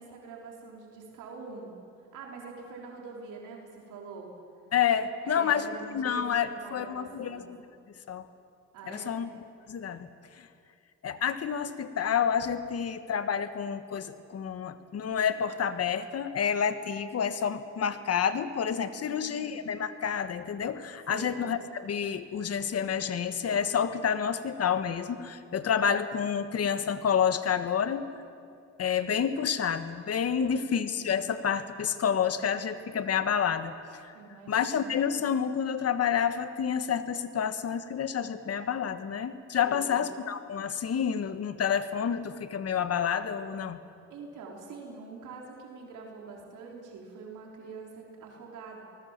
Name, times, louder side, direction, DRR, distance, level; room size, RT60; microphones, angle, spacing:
voice 1, 0.0-1.7 2.1-4.3 5.2-7.5 8.7-9.2 18.8-19.6 21.1-21.4 30.3-30.8 34.1-34.9 39.6-40.0 44.1-48.8, right 4 dB, 85° right, -1 dB, 4.1 m, -45 dB
voice 2, 4.7-7.4 8.1-8.2 8.9-9.3 9.7-10.1 10.4-10.5 11.0-28.1 28.8-34.1 34.5-43.8, left 7 dB, 55° left, 11 dB, 1.5 m, -29 dB
25.0 x 19.5 x 7.4 m, 2.3 s
cardioid pair, 90°, 30 cm